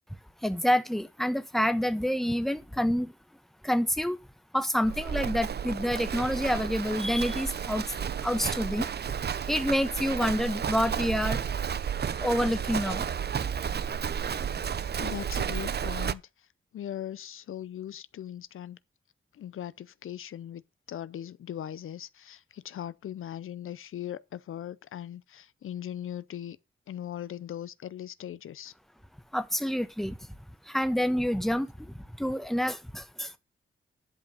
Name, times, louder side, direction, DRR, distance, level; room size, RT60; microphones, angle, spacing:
voice 1, 0.4-3.1 3.6-4.2 4.5-7.8 8.2-8.9 9.5-11.4 12.2-13.0 29.3-30.2 30.7-33.4, equal, ahead, 1.2 m, -28 dB
Livestock farm animals working animals, 4.8-16.1, right 7 dB, 50° right, 0.5 m, -32 dB
voice 2, 15.0-16.2 16.7-18.8 19.4-20.6 20.9-26.6 26.9-28.7, left 11 dB, 80° left, 0.5 m, -39 dB
11.0 x 5.3 x 5.4 m
cardioid pair, 55°, 21 cm